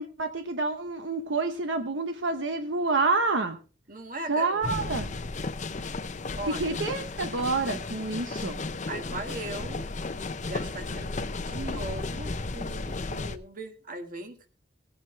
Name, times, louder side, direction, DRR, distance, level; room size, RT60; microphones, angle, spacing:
voice 1, 0.0-3.6 4.3-5.2 6.5-8.7, right 3 dB, 75° right, 7 dB, 0.9 m, -28 dB
voice 2, 3.9-4.8 6.3-6.6 8.9-14.5, right 2 dB, 45° right, 6 dB, 1.7 m, -39 dB
sound 1, 4.6-13.4, left 3 dB, 40° left, 0.7 m, -34 dB
18.0 x 9.0 x 3.3 m, 0.37 s
head